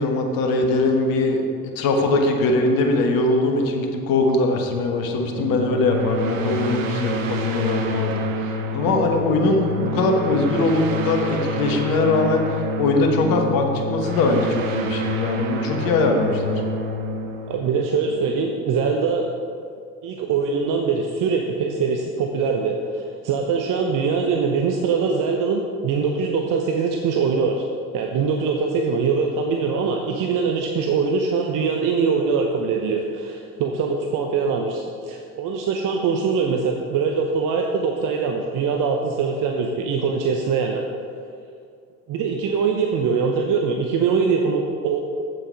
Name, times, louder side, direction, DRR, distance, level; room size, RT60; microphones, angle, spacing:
voice 1, 0.0-1.4 1.7-16.6, left 2 dB, 65° left, 3 dB, 1.4 m, -21 dB
sound 1, 5.3-18.7, equal, 85° right, 0.8 m, -28 dB
voice 2, 17.5-19.3 20.0-27.6 27.9-40.9 42.1-45.0, right 5 dB, 55° right, 2 dB, 0.9 m, -23 dB
7.9 x 7.6 x 5.2 m, 2.4 s
hypercardioid pair, 55°, 38 cm